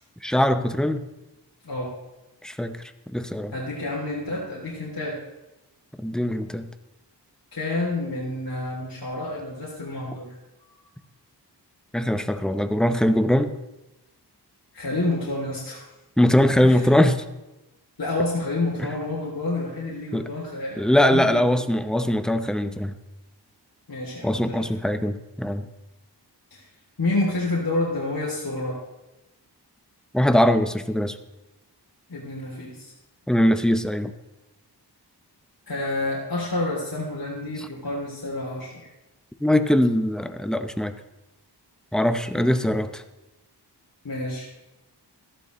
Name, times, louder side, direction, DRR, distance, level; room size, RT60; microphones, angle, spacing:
voice 1, 0.2-1.0 2.4-2.8 3.1-3.5 6.0-6.7 11.9-13.5 16.2-17.2 18.8-18.9 20.1-20.3 20.8-22.9 24.2-25.7 30.1-31.2 33.3-34.1 37.6-37.7 39.4-40.9 41.9-43.0, left 1 dB, ahead, 9 dB, 0.7 m, -21 dB
voice 2, 3.5-5.1 7.5-10.3 14.7-15.8 16.6-16.8 18.0-21.4 23.9-24.7 26.5-26.6 27.0-28.7 32.1-32.9 35.7-38.9 42.3-42.6 44.0-44.5, left 2 dB, 55° left, -6 dB, 3.1 m, -29 dB
14.0 x 12.0 x 3.1 m, 0.99 s
wide cardioid pair, 65°, 42 cm